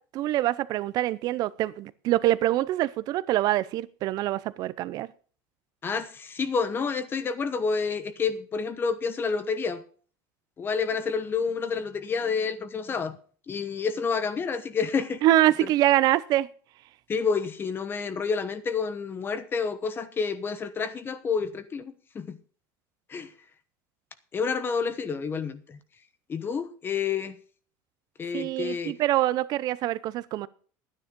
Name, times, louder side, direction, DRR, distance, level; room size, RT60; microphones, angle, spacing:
voice 1, 0.1-5.1 15.2-16.5 28.3-30.5, right 14 dB, 50° right, 0.7 m, -25 dB
voice 2, 5.8-9.8 10.6-13.2 13.5-15.2 17.1-22.4 23.1-23.3 24.3-25.8 26.3-27.4 28.2-29.0, left 5 dB, 25° left, 1.0 m, -29 dB
11.5 x 9.9 x 5.3 m
supercardioid pair, 130°, 8 cm